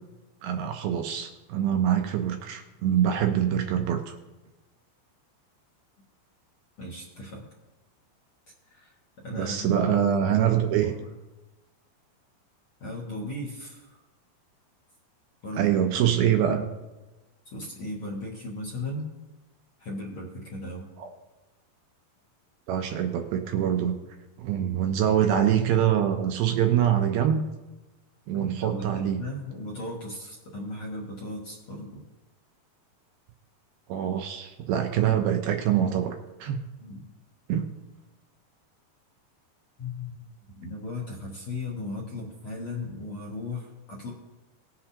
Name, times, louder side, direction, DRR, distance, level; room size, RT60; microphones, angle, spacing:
voice 1, 0.4-4.2 9.3-10.9 15.6-16.6 21.0-21.1 22.7-24.0 24.4-27.4 28.3-29.2 33.9-36.6 37.5-37.6, right 9 dB, 80° right, 5 dB, 2.2 m, -24 dB
voice 2, 6.8-7.4 8.7-8.9 9.2-10.0 10.8-10.9 12.8-14.0 15.4-15.7 16.1-16.2 17.4-19.0 19.8-20.9 28.3-32.0 36.8-37.0 39.8-40.2 40.6-44.1, left 2 dB, 60° left, -3 dB, 1.5 m, -36 dB
19.0 x 7.9 x 2.8 m, 1.1 s
omnidirectional pair, 5.0 m